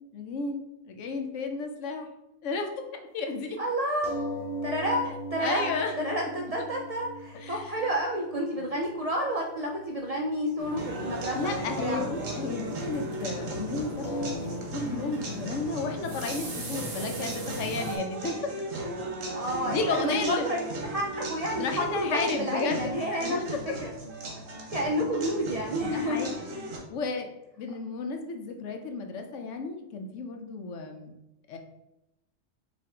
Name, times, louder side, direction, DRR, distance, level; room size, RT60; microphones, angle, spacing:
voice 1, 0.1-2.1 2.4-2.7 3.1-3.6 5.4-6.0 7.3-7.8 8.6-8.7 11.3-18.5 19.6-20.5 21.6-23.4 25.8-26.5 26.9-27.3 27.6-31.1 31.5-31.6, left 4 dB, 75° left, 4 dB, 1.0 m, -33 dB
voice 2, 3.6-4.1 4.6-12.0 19.3-23.9 24.7-26.2, equal, 65° right, 0 dB, 0.3 m, -30 dB
sound 1, 4.0-9.1 9.4-9.5 9.7-9.8 10.2-10.3 14.0-14.4, equal, 45° left, 0.8 m, -37 dB
sound 2, 10.6-18.0, left 1 dB, 50° right, 1.0 m, -39 dB
sound 3, 10.8-26.8, right 2 dB, 90° right, 1.3 m, -37 dB
5.1 x 2.5 x 3.6 m, 0.90 s
omnidirectional pair, 1.3 m